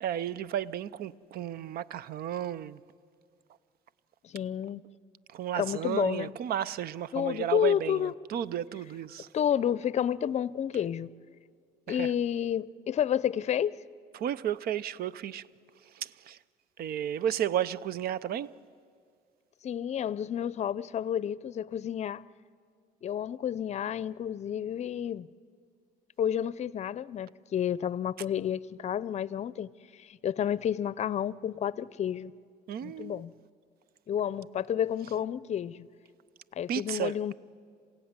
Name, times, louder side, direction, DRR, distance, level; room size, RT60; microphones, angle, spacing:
voice 1, 0.0-2.8 5.3-9.3 11.9-12.1 14.1-15.4 15.9-16.4 16.8-18.5 32.7-33.2 36.7-37.1, right 10 dB, 65° right, 0.7 m, -33 dB
voice 2, 4.2-4.8 5.6-6.3 7.1-8.1 9.3-11.1 11.9-13.8 19.6-22.2 23.0-25.3 26.2-32.3 32.8-33.3 34.1-35.9 36.5-37.3, left 9 dB, 40° left, 0.6 m, -30 dB
27.5 x 16.5 x 9.6 m
cardioid pair, 110°, 17 cm